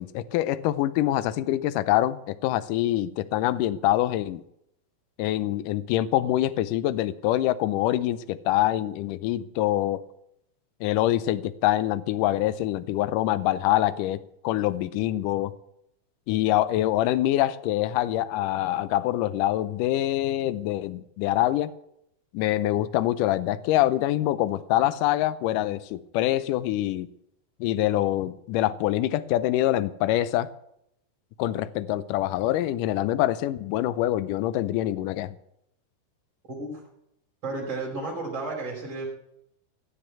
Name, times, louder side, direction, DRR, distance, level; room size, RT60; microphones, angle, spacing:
voice 1, 0.0-4.4 5.2-10.0 10.8-15.5 16.3-21.7 22.3-27.1 27.6-30.5 31.4-35.4, left 14 dB, 80° left, 14 dB, 2.2 m, -25 dB
voice 2, 36.5-36.8 37.4-39.1, right 3 dB, 35° right, -3 dB, 5.4 m, -32 dB
17.0 x 6.9 x 9.1 m, 0.78 s
omnidirectional pair, 3.8 m